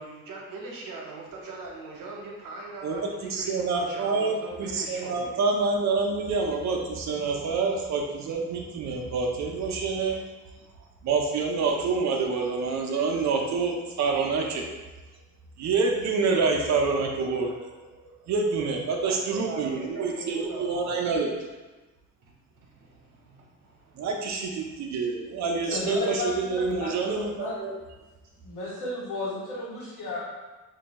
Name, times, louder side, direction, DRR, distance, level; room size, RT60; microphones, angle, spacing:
voice 1, 0.0-5.4 19.0-21.0 22.2-22.3 22.8-24.1 25.7-25.8, right 3 dB, 90° right, -2 dB, 0.8 m, -40 dB
voice 2, 2.8-10.2 11.0-14.7 15.6-17.9 18.3-21.3 24.0-27.7, right 4 dB, 60° right, 1 dB, 0.5 m, -27 dB
voice 3, 25.6-27.5 28.4-30.2, left 2 dB, 80° left, -8 dB, 1.4 m, -33 dB
2.6 x 2.2 x 4.0 m, 1.2 s
wide cardioid pair, 180°, 31 cm